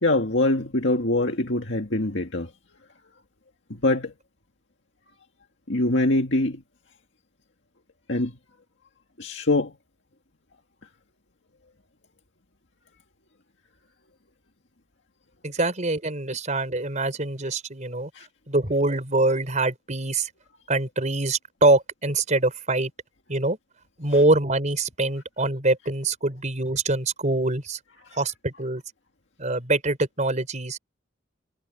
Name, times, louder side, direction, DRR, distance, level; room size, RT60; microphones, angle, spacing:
voice 1, 0.0-2.5 3.7-4.1 5.7-6.6 8.1-8.3 9.2-9.7 18.1-18.3 24.1-24.2 28.1-28.2, left 2 dB, 70° left, 2.0 m, -24 dB
voice 2, 15.4-18.1 18.5-20.3 20.7-22.9 23.3-23.6 24.0-27.8 28.1-28.8 29.4-30.8, right 2 dB, 40° right, 4.5 m, -24 dB
head